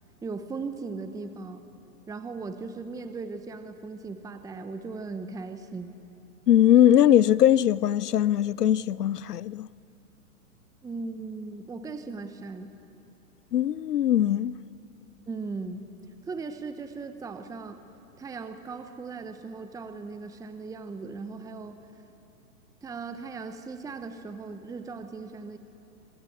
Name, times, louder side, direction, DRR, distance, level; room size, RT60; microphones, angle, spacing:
voice 1, 0.2-1.6 2.1-6.0 10.8-12.7 15.3-15.8 16.3-17.8 18.2-21.8 22.8-25.6, right 4 dB, 10° right, 0.9 m, -38 dB
voice 2, 6.5-9.7 13.5-14.5, left 11 dB, 90° left, 0.7 m, -20 dB
26.0 x 20.0 x 8.5 m
hypercardioid pair, 120°, 45 cm